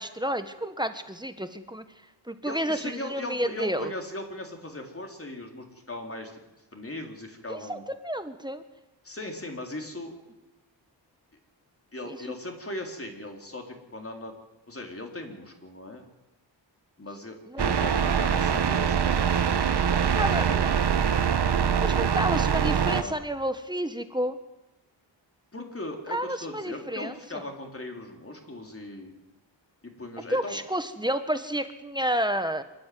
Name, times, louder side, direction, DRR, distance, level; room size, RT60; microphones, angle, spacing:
voice 1, 0.0-1.8 2.3-3.9 7.5-8.6 12.1-12.2 17.5-17.7 20.1-20.7 21.8-24.4 26.1-27.4 30.3-32.6, right 1 dB, 10° right, 9 dB, 1.4 m, -30 dB
voice 2, 2.5-6.3 6.7-7.9 9.0-10.1 11.9-14.3 14.7-16.1 17.0-19.2 20.2-20.6 22.8-23.2 25.5-29.1 29.8-30.6, left 1 dB, 30° left, 2 dB, 3.9 m, -38 dB
sound 1, 17.6-23.0, right 7 dB, 60° right, 1.3 m, -24 dB
26.0 x 13.0 x 9.5 m, 0.99 s
wide cardioid pair, 105°, 46 cm